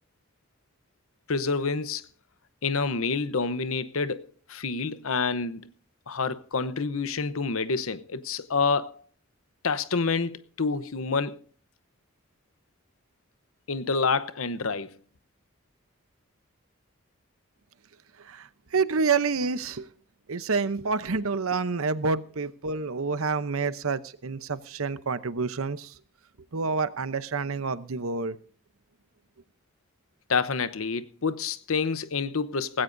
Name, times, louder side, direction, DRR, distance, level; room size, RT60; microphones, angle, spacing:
voice 1, 1.3-2.1 2.6-5.6 6.1-9.0 9.6-11.4 13.7-14.9 30.3-32.8, left 4 dB, 85° left, 0.9 m, -28 dB
voice 2, 18.2-19.9 20.3-26.0 26.5-28.4, right 4 dB, 85° right, 0.8 m, -28 dB
18.5 x 16.5 x 2.7 m
head